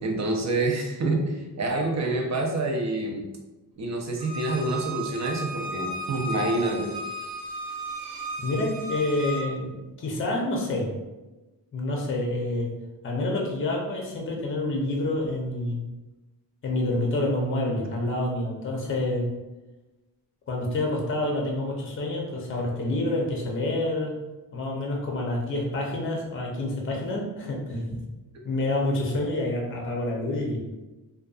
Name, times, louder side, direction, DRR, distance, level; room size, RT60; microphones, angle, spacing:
voice 1, 0.0-3.2 3.8-6.9 27.9-28.0, right 2 dB, 40° right, 1 dB, 0.5 m, -27 dB
Bowed string instrument, 4.2-9.4, right 1 dB, 80° right, 0.7 m, -35 dB
voice 2, 8.4-9.7 10.0-10.9 11.7-12.7 13.0-15.8 16.6-19.3 20.5-24.1 24.5-28.0 28.4-30.6, left 2 dB, 30° left, -1 dB, 0.6 m, -28 dB
2.6 x 2.3 x 2.3 m, 1.1 s
cardioid pair, 75°, 43 cm